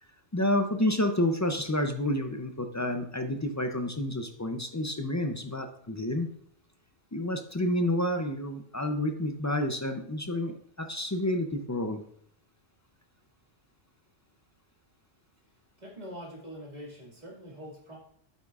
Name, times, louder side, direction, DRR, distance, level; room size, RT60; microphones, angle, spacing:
voice 1, 0.3-6.3 7.1-12.0, left 1 dB, 25° left, 6 dB, 0.4 m, -29 dB
voice 2, 15.8-18.0, equal, 35° right, -3 dB, 2.1 m, -44 dB
8.6 x 8.1 x 2.4 m, 0.66 s
omnidirectional pair, 1.2 m